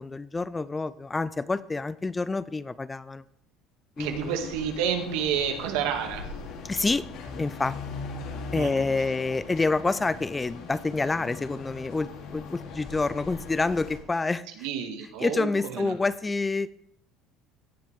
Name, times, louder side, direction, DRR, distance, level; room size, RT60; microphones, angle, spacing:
voice 1, 0.0-3.2 4.0-4.4 6.6-7.1 7.4-7.8 8.5-14.7 15.2-16.7, left 3 dB, 15° left, 17 dB, 0.3 m, -28 dB
sound 1, 4.0-14.0, left 4 dB, 60° left, 2.6 m, -40 dB
voice 2, 4.0-6.3 8.6-8.9 14.6-15.9, right 8 dB, 85° right, 4 dB, 2.0 m, -30 dB
17.0 x 7.2 x 3.4 m, 0.72 s
cardioid pair, 150°, 0 cm